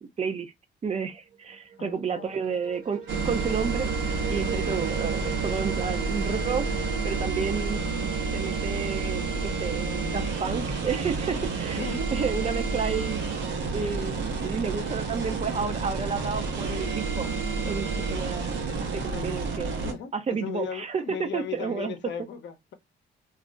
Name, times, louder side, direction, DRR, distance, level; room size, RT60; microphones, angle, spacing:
voice 1, 0.2-0.5 0.8-13.2 13.7-18.6 18.9-21.9, right 6 dB, 35° right, 0.5 m, -32 dB
sound 1, 1.1-8.9, right 7 dB, 50° right, 1.0 m, -40 dB
voice 2, 1.8-2.4 11.8-12.0 19.1-22.7, left 8 dB, 65° left, 0.7 m, -37 dB
sound 2, 3.1-19.9, right 4 dB, 70° right, 0.8 m, -29 dB
2.4 x 2.1 x 3.7 m
cardioid pair, 90°, 20 cm